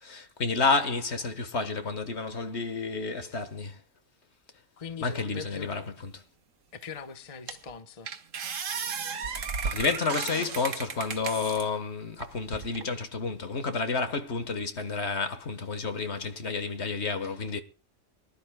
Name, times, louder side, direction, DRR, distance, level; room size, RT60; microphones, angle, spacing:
voice 1, 0.0-3.8 5.0-6.2 9.2-17.6, left 4 dB, 60° left, 1.7 m, -30 dB
voice 2, 4.8-5.8 6.7-8.1, left 5 dB, 30° left, 1.0 m, -41 dB
sound 1, 6.8-6.9 7.5-7.7 8.1-11.7 12.2-12.9, right 6 dB, 85° right, 1.5 m, -34 dB
24.0 x 12.0 x 2.2 m
omnidirectional pair, 1.3 m